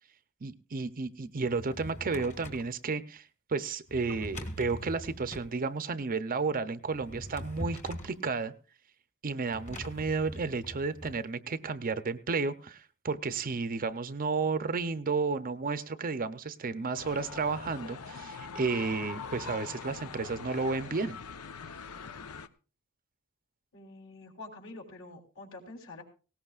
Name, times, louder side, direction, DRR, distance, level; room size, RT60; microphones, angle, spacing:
voice 1, 0.4-8.5 9.2-21.2, right 4 dB, 40° right, 12 dB, 0.6 m, -32 dB
Drawer open or close, 1.4-2.7 3.9-5.5 6.9-8.2 9.5-11.2, equal, 35° left, 1.6 m, -42 dB
sound 1, 16.9-22.5, left 5 dB, 85° left, 0.8 m, -43 dB
voice 2, 23.7-26.0, left 2 dB, 65° left, 2 dB, 3.6 m, -47 dB
19.0 x 17.5 x 2.4 m, 0.34 s
head